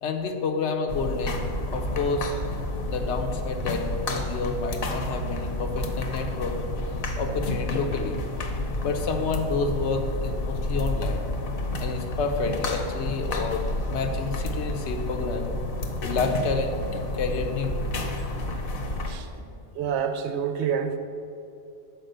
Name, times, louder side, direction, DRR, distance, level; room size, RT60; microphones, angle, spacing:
voice 1, 0.0-2.3 2.9-6.6 7.2-8.2 8.8-11.2 11.8-15.7 16.0-16.8 17.2-17.7 19.4-19.5, left 4 dB, 85° left, 5 dB, 1.0 m, -29 dB
sound 1, 0.9-19.1, left 1 dB, 60° left, 0.8 m, -30 dB
voice 2, 19.7-21.0, right 7 dB, 85° right, 8 dB, 0.9 m, -27 dB
6.2 x 4.7 x 6.5 m, 2.7 s
omnidirectional pair, 1.1 m